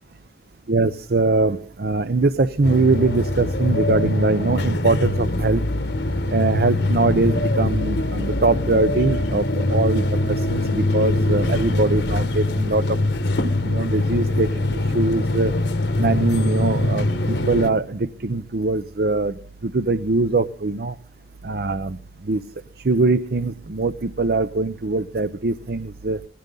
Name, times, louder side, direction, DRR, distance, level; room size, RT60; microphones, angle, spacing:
voice 1, 0.7-5.6 6.3-13.0 13.6-15.5 16.0-21.0 21.4-22.0 22.2-22.4 22.8-26.2, right 3 dB, 60° right, 14 dB, 0.6 m, -22 dB
sound 1, 2.6-17.7, left 1 dB, 85° left, 1.7 m, -23 dB
19.5 x 16.0 x 3.8 m, 0.39 s
head